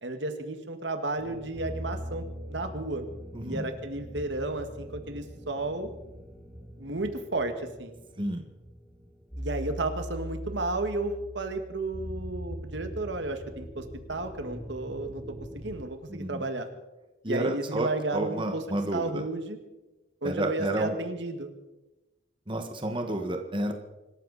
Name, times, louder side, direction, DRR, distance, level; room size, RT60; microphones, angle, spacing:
voice 1, 0.0-2.2 2.5-3.0 3.4-5.9 6.8-7.5 7.8-7.9 9.4-13.8 14.1-15.2 15.5-16.7 17.3-18.6 18.9-19.6 20.2-21.5, right 2 dB, 75° right, 7 dB, 1.7 m, -32 dB
sound 1, 1.2-15.8, equal, ahead, 3.5 m, -41 dB
voice 2, 3.3-3.7 8.2-8.4 16.1-16.5 17.2-19.2 20.2-20.9 22.5-23.7, right 1 dB, 25° right, 5 dB, 1.5 m, -31 dB
25.5 x 13.5 x 4.1 m, 1.1 s
head